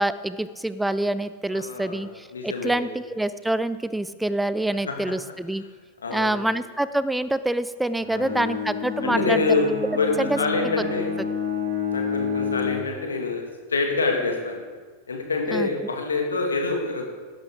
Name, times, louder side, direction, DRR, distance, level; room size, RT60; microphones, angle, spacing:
voice 1, 0.0-5.6 6.1-9.4 10.2-10.4 10.8-10.9 15.5-15.7, right 1 dB, 5° right, 14 dB, 0.5 m, -26 dB
voice 2, 1.5-2.9 6.0-6.5 8.1-8.4 9.0-9.7 10.0-11.1 11.9-14.6 15.1-17.3, left 3 dB, 70° left, 2 dB, 2.3 m, -26 dB
Bowed string instrument, 8.0-12.9, left 5 dB, 55° right, 4.3 m, -29 dB
16.5 x 11.5 x 3.9 m, 1.4 s
figure-of-eight pair, 90°, 0 cm